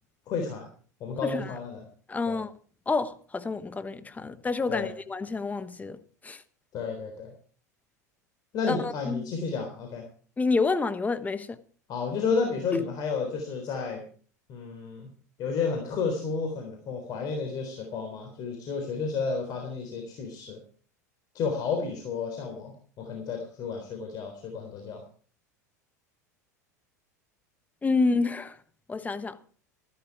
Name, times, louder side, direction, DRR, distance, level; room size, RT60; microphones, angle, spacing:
voice 1, 0.3-0.7 1.0-1.9 2.3-2.4 4.7-4.9 6.7-7.3 8.5-10.1 11.9-14.0 14.5-15.1 15.4-20.6 21.3-25.0, left 5 dB, 45° left, 3.9 m, -31 dB
voice 2, 1.2-1.5 2.1-2.5 2.9-6.4 8.7-9.3 10.4-11.6 12.7-12.9 27.8-28.6 28.9-29.4, left 4 dB, 15° left, 1.2 m, -28 dB
14.5 x 12.5 x 4.8 m
hypercardioid pair, 85°, 9 cm